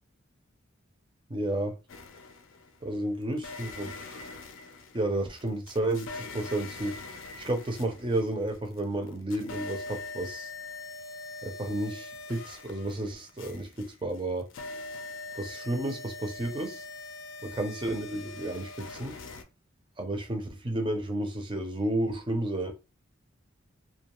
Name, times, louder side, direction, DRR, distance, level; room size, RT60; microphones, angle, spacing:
voice 1, 1.3-1.7 2.8-4.2 4.9-7.0 7.4-10.5 11.4-14.5 15.4-16.8 17.4-19.2 20.0-22.7, right 1 dB, 25° right, 0.5 m, -32 dB
sound 1, 1.9-2.8 3.4-8.8 9.1-19.4, left 3 dB, 70° left, 0.5 m, -43 dB
2.3 x 2.3 x 2.9 m
head